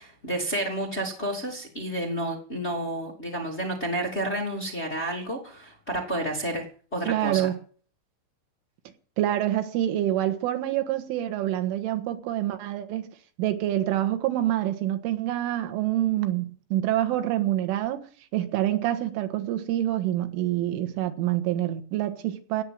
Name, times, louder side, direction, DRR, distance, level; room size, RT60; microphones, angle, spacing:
voice 1, 0.0-6.7 6.9-7.5, right 1 dB, 20° left, 2.2 m, -30 dB
voice 2, 7.1-7.6 9.2-13.1 13.4-18.0 18.3-22.6, right 13 dB, 80° right, 3.9 m, -26 dB
17.5 x 11.0 x 7.8 m
omnidirectional pair, 5.6 m